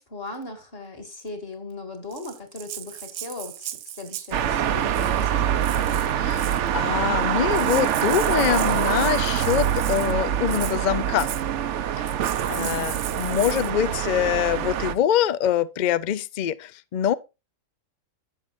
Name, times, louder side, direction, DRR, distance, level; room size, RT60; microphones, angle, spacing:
voice 1, 0.0-5.5 12.6-12.9, left 2 dB, 40° left, 2.3 m, -38 dB
Rattle (instrument), 2.1-4.4 4.9-5.3 5.6-6.7 7.2-7.3 7.5-10.1 10.5-10.8 11.2-11.4 12.1-13.7, right 12 dB, 80° right, 1.1 m, -37 dB
sound 1, 4.3-14.9, right 9 dB, 60° right, 0.9 m, -24 dB
voice 2, 6.2-11.3 12.0-12.1 12.5-17.1, left 10 dB, 85° left, 0.4 m, -24 dB
11.5 x 7.5 x 2.6 m
omnidirectional pair, 1.6 m